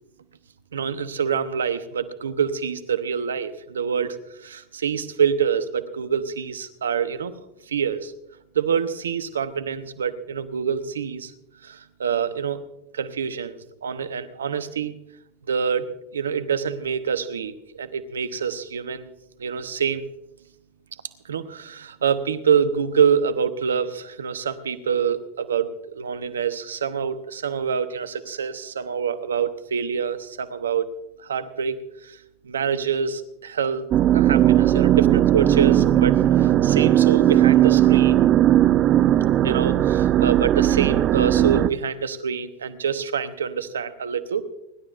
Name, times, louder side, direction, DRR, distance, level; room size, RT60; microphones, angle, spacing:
voice 1, 0.7-7.3 7.7-8.1 8.5-11.3 11.6-12.6 12.9-14.9 15.5-19.1 19.4-20.0 21.2-30.9 31.2-32.2 32.4-33.8 34.1-38.3 39.4-44.4, right 7 dB, 85° right, 12 dB, 0.9 m, -26 dB
sound 1, 33.9-41.7, right 12 dB, 40° right, 0.5 m, -17 dB
30.0 x 12.0 x 2.5 m, 0.84 s
hypercardioid pair, 90°, 0 cm